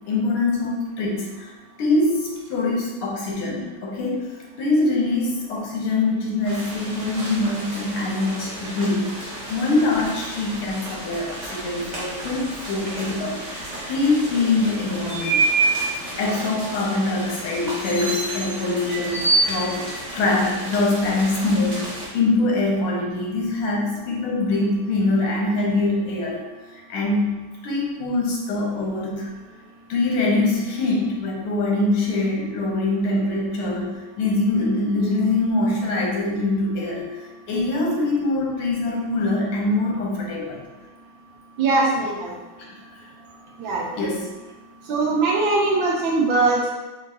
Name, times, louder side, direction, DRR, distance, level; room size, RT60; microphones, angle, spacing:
voice 1, 0.1-1.5 1.8-4.3 4.6-15.5 16.2-19.9 20.1-26.4 26.7-27.4 27.6-29.3 29.9-40.6 43.0-43.1 44.0-44.3, left 2 dB, 85° left, -2 dB, 1.8 m, -23 dB
sound 1, 6.4-22.1, right 2 dB, 45° right, 0.5 m, -29 dB
voice 2, 41.6-42.3 43.6-43.8 44.9-46.7, right 3 dB, 75° right, -2 dB, 1.3 m, -21 dB
4.5 x 3.4 x 2.7 m, 1.2 s
omnidirectional pair, 2.4 m